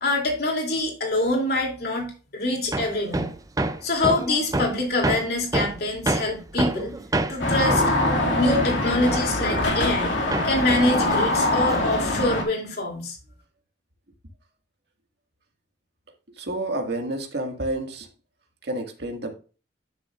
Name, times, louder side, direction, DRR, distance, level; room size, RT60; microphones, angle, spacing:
voice 1, 0.0-3.3 3.8-7.0 7.3-7.8 8.3-10.1 10.4-13.2, left 2 dB, 60° left, 2.9 m, -25 dB
Hammer, 2.7-10.1 10.3-12.1, right 2 dB, 20° right, 0.5 m, -28 dB
sound 1, 7.4-12.4, left 1 dB, 85° left, 2.2 m, -23 dB
voice 2, 16.3-18.1 18.6-19.3, right 1 dB, 65° right, 1.9 m, -29 dB
11.5 x 6.9 x 2.5 m
head